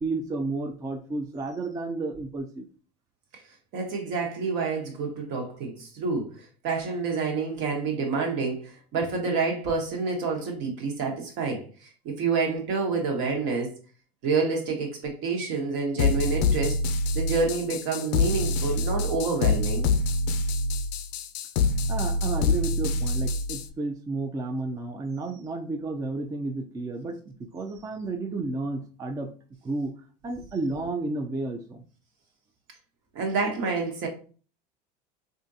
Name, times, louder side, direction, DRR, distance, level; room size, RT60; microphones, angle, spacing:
voice 1, 0.0-2.7 21.9-29.3 29.6-30.0 30.2-31.8, right 3 dB, 15° right, 0.4 m, -32 dB
voice 2, 3.7-13.7 14.2-16.8 17.1-19.9 33.1-34.1, right 4 dB, 65° right, 1.2 m, -28 dB
sound 1, 16.0-23.7, left 3 dB, 80° left, 0.4 m, -26 dB
3.6 x 2.5 x 2.7 m
supercardioid pair, 115°, 21 cm